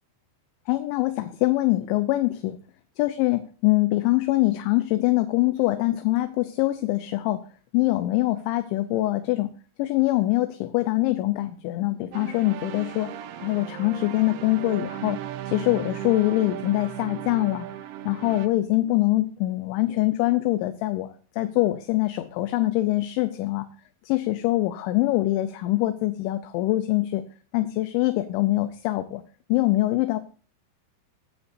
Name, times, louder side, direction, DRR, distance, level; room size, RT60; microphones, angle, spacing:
voice 1, 0.7-2.6 3.0-7.4 7.7-9.5 9.8-13.1 13.4-15.2 15.5-17.7 18.1-23.7 24.1-27.2 27.5-29.2 29.5-30.2, left 17 dB, 80° left, 10 dB, 2.8 m, -24 dB
sound 1, 12.1-18.5, right 11 dB, 90° right, 2.2 m, -36 dB
20.5 x 9.7 x 2.7 m, 0.37 s
omnidirectional pair, 5.6 m